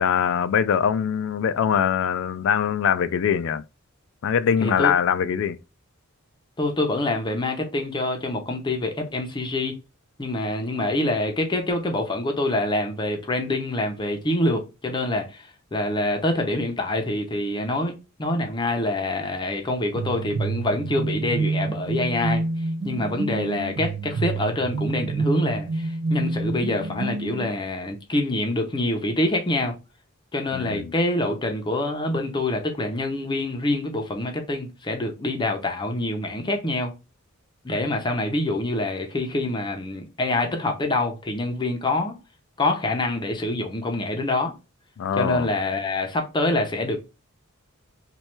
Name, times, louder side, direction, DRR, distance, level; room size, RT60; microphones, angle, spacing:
voice 1, 0.0-3.6 4.2-5.6 30.5-30.9 45.0-45.5, left 8 dB, 60° left, 0.3 m, -22 dB
voice 2, 4.6-4.9 6.6-9.8 10.2-22.5 22.8-29.7 30.3-36.9 37.6-42.2 42.6-44.5 45.1-47.0, left 1 dB, 20° left, 0.6 m, -26 dB
sound 1, 19.9-27.6, right 3 dB, 55° right, 0.4 m, -28 dB
3.1 x 2.3 x 4.3 m
head